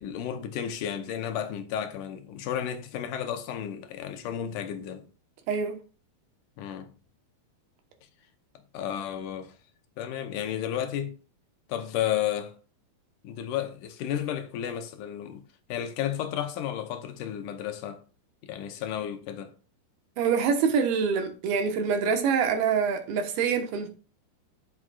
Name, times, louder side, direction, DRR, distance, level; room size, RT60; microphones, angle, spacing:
voice 1, 0.0-5.1 6.6-6.9 8.7-9.5 10.0-11.2 11.7-12.6 13.2-15.4 15.7-18.0 18.4-19.5, left 10 dB, 75° left, 2.1 m, -32 dB
voice 2, 5.5-5.8 20.2-23.9, right 6 dB, 80° right, 3.0 m, -25 dB
12.5 x 6.1 x 2.4 m
omnidirectional pair, 4.4 m